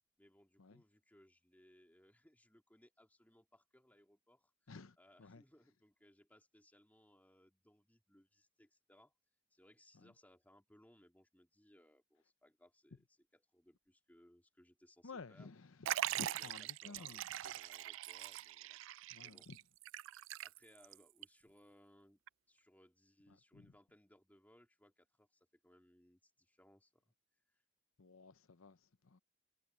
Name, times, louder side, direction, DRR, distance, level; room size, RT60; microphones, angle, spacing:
voice 1, 0.2-4.7 5.0-9.1 9.5-13.0 13.3-15.5 16.1-19.6 20.4-22.2 22.5-27.1 27.5-27.6, left 1 dB, 10° left, 2.5 m, -67 dB
voice 2, 4.7-5.4 9.9-10.1 15.0-17.2 19.1-19.6 23.3-23.7 28.0-29.2, left 4 dB, 90° left, 0.8 m, -54 dB
Liquid, 15.8-20.9 21.2-21.3 22.3-22.4, right 13 dB, 65° right, 0.3 m, -42 dB
head